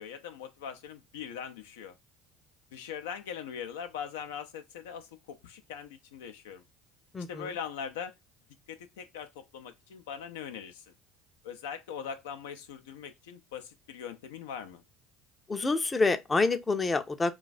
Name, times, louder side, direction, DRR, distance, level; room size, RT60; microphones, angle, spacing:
voice 1, 0.0-1.9 2.7-6.6 7.3-8.1 8.7-10.8 11.4-14.8, left 7 dB, 80° left, 0.4 m, -41 dB
voice 2, 7.1-7.5 15.5-17.3, left 3 dB, 25° left, 0.5 m, -27 dB
2.3 x 2.3 x 4.0 m
hypercardioid pair, 70°, 0 cm